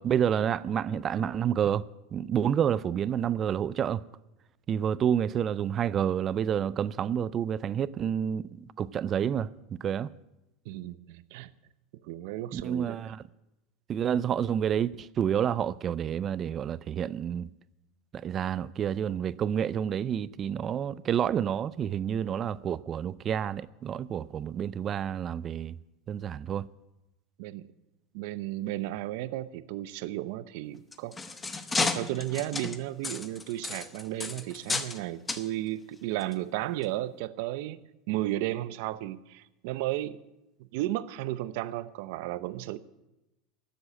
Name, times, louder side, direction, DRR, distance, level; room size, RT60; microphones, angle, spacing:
voice 1, 0.0-1.8 2.1-4.0 4.7-8.4 8.8-10.1 12.5-13.2 13.9-17.5 18.1-25.8 26.1-26.7, right 9 dB, 30° right, 0.4 m, -29 dB
voice 2, 10.7-11.5 12.0-13.2 27.4-27.6 28.1-31.1 31.8-37.8 38.1-40.2 40.7-42.8, right 15 dB, 70° right, 0.7 m, -34 dB
sound 1, 30.7-35.0 35.3-35.5 36.2-36.3 36.8-36.9, left 4 dB, 15° left, 0.9 m, -33 dB
12.5 x 7.8 x 9.8 m
supercardioid pair, 135°, 0 cm